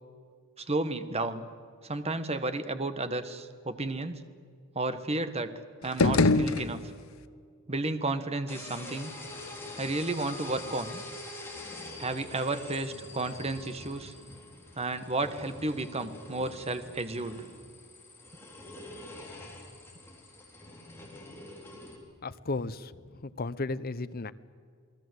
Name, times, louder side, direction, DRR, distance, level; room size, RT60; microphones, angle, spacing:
voice 1, 0.6-1.5 1.8-4.2 4.7-5.5 5.8-6.9 7.7-9.1 9.8-11.0 12.0-14.1 14.7-17.4, right 2 dB, 30° right, 10 dB, 1.4 m, -32 dB
sound 1, 5.8-7.3, left 3 dB, 70° left, 0.9 m, -25 dB
sound 2, 8.5-22.0, left 2 dB, 10° left, 4.4 m, -45 dB
voice 2, 22.2-24.3, left 3 dB, 45° left, 14 dB, 0.8 m, -35 dB
28.5 x 19.5 x 8.1 m, 2.1 s
head